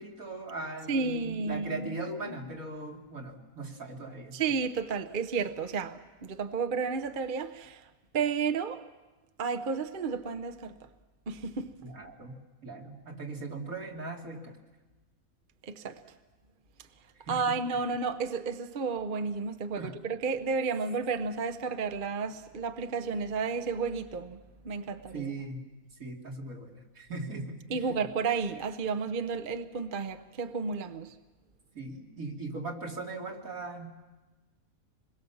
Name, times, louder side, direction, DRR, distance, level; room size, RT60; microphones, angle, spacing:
voice 1, 0.0-4.4 11.8-14.6 17.3-17.5 19.8-19.9 25.1-25.7 26.0-27.8 31.7-34.0, right 3 dB, 75° right, 3.1 m, -39 dB
voice 2, 0.9-2.3 4.3-7.8 8.1-8.8 9.4-10.8 11.3-11.7 15.6-16.0 17.3-25.3 27.7-31.1, right 5 dB, 40° right, 0.9 m, -32 dB
26.5 x 21.5 x 7.1 m
omnidirectional pair, 1.5 m